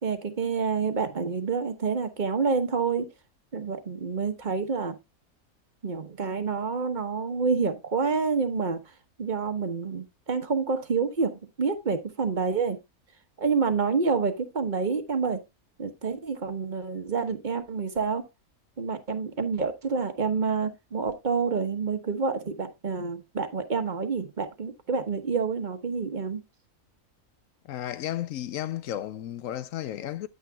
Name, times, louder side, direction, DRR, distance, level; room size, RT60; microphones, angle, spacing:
voice 1, 0.0-3.1 3.5-4.9 5.8-8.8 9.2-12.8 13.4-15.4 15.8-18.2 18.8-26.4, right 5 dB, 35° right, 1.1 m, -28 dB
voice 2, 27.6-30.3, left 12 dB, 70° left, 0.9 m, -33 dB
9.6 x 8.8 x 2.3 m
omnidirectional pair, 1.6 m